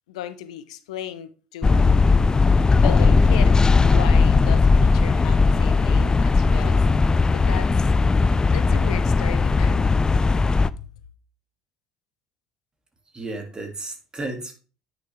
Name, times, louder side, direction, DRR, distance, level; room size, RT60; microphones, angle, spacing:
voice 1, 0.1-1.9 2.8-6.9 7.3-7.7 8.4-9.9 10.2-10.5 10.8-10.9, left 12 dB, 75° left, 0.8 m, -35 dB
sound 1, 1.6-10.7, left 4 dB, 20° left, 0.4 m, -18 dB
voice 2, 13.1-14.5, right 2 dB, 25° right, 2.7 m, -33 dB
9.4 x 6.0 x 3.6 m
hypercardioid pair, 65°, 4 cm